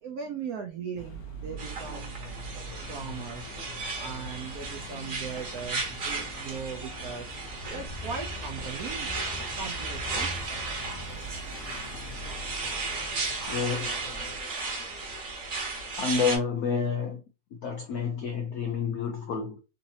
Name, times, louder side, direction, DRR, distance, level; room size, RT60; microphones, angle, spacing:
voice 1, 0.0-2.2 2.8-3.5 4.0-9.1 9.5-10.5, right 6 dB, 80° right, 0.8 m, -39 dB
sound 1, 1.0-14.4, right 1 dB, 55° left, 0.9 m, -44 dB
sound 2, 1.6-16.4, right 3 dB, 50° right, 1.2 m, -35 dB
sound 3, 7.5-13.5, left 1 dB, 30° right, 1.0 m, -44 dB
voice 2, 13.5-14.0 16.0-17.2 17.6-19.6, left 5 dB, 90° left, 0.8 m, -29 dB
4.0 x 2.8 x 2.7 m
omnidirectional pair, 2.2 m